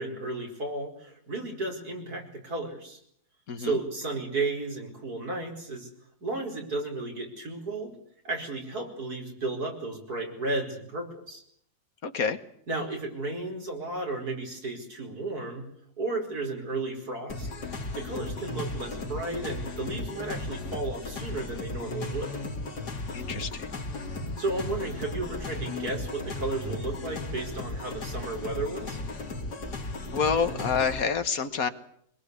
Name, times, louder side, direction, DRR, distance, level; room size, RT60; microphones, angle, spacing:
voice 1, 0.0-3.0 3.6-5.9 6.2-8.0 8.2-11.4 12.7-15.7 16.0-17.5 17.9-22.3 24.4-29.0, right 2 dB, 70° right, 1 dB, 5.6 m, -33 dB
voice 2, 12.0-12.4 23.1-23.7 30.1-31.7, left 6 dB, 60° left, 10 dB, 1.7 m, -27 dB
sound 1, 17.3-31.0, left 2 dB, 85° left, 3.1 m, -35 dB
23.5 x 21.5 x 8.3 m, 0.67 s
omnidirectional pair, 1.7 m